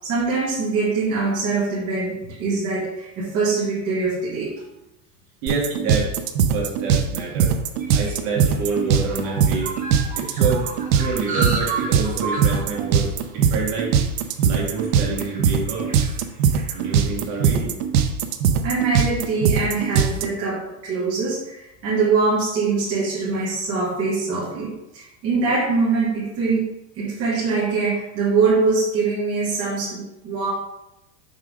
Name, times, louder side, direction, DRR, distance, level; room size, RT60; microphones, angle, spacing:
voice 1, 0.0-4.5 18.6-26.7 26.9-30.5, right 4 dB, 35° right, -8 dB, 1.6 m, -23 dB
voice 2, 5.4-6.1 6.5-7.5 7.9-9.7 10.2-10.7 10.9-13.9 14.4-15.9 16.7-17.7, right 4 dB, 55° right, -3 dB, 2.2 m, -27 dB
sound 1, 5.5-20.3, right 7 dB, 75° right, 0.7 m, -20 dB
sound 2, 7.1-17.7, right 3 dB, 20° right, 0.8 m, -34 dB
5.7 x 3.6 x 4.8 m, 0.90 s
supercardioid pair, 170°, 41 cm